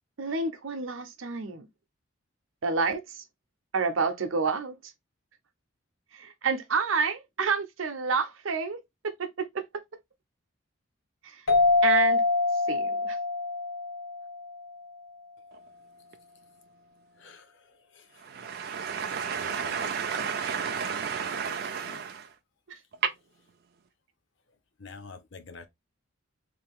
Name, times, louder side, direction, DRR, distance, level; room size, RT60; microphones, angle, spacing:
voice 1, 0.2-1.7 2.6-3.2 3.7-4.8 6.1-8.8 9.2-9.6 11.2-11.4 11.8-12.2 12.7-13.2 22.7-22.8, right 4 dB, 70° right, 0.7 m, -29 dB
sound 1, 11.5-14.8, left 3 dB, 80° left, 1.2 m, -25 dB
voice 2, 17.2-17.7 17.9-18.1 19.3-19.9 21.8-22.0 24.8-25.7, left 4 dB, 55° left, 0.7 m, -47 dB
voice 3, 18.2-22.3 23.0-23.1, right 6 dB, 50° right, 0.4 m, -31 dB
3.4 x 2.6 x 3.5 m
head